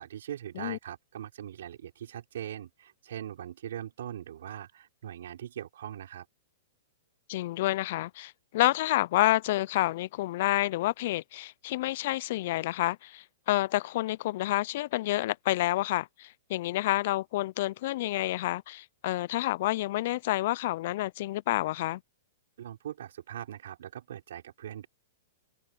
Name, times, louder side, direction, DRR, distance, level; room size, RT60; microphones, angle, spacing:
voice 1, 0.0-6.3 22.6-24.9, right 10 dB, 70° right, 4.0 m, -41 dB
voice 2, 7.3-22.0, left 16 dB, 55° left, 0.6 m, -29 dB
hypercardioid pair, 115°, 0 cm